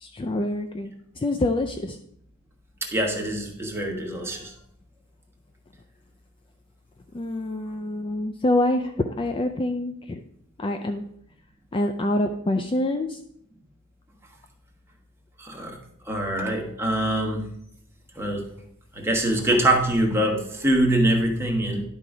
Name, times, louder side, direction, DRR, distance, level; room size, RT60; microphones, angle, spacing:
voice 1, 0.0-2.0 7.1-10.2 10.6-11.0 11.7-13.2, left 1 dB, 25° left, 6 dB, 0.4 m, -26 dB
voice 2, 2.9-4.5 15.4-15.8 16.1-17.4 18.2-18.4 18.9-21.8, right 1 dB, 10° right, 0 dB, 1.3 m, -24 dB
11.0 x 3.9 x 4.8 m, 0.70 s
head